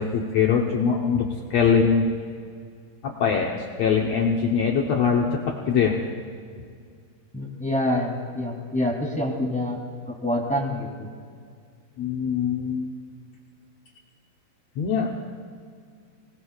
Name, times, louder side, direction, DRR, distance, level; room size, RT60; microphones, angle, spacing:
voice 1, 0.0-2.1 3.0-6.0 12.0-12.9 14.8-15.1, left 6 dB, 75° left, -1 dB, 1.6 m, -22 dB
voice 2, 7.3-9.8 10.1-11.1, left 1 dB, 5° left, -3 dB, 2.0 m, -26 dB
25.5 x 18.5 x 2.4 m, 2.1 s
omnidirectional pair, 4.4 m